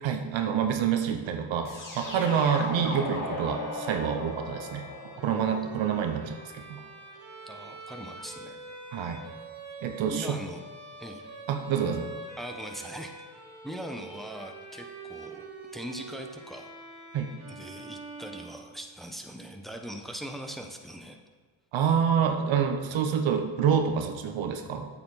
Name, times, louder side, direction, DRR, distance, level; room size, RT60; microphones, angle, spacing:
voice 1, 0.0-6.8 8.9-9.2 9.8-10.4 11.5-12.1 17.1-17.3 21.7-24.9, right 7 dB, 75° right, 6 dB, 1.0 m, -27 dB
sound 1, 1.6-6.6, left 2 dB, 45° left, 2.5 m, -38 dB
Bowed string instrument, 3.1-19.0, right 3 dB, 35° right, 2.5 m, -45 dB
voice 2, 7.5-8.8 10.1-10.6 11.0-11.2 12.4-13.1 13.6-15.5 15.7-16.7 17.5-21.2, right 1 dB, ahead, 3 dB, 1.1 m, -41 dB
8.4 x 7.3 x 4.2 m, 1.5 s
supercardioid pair, 55°, 46 cm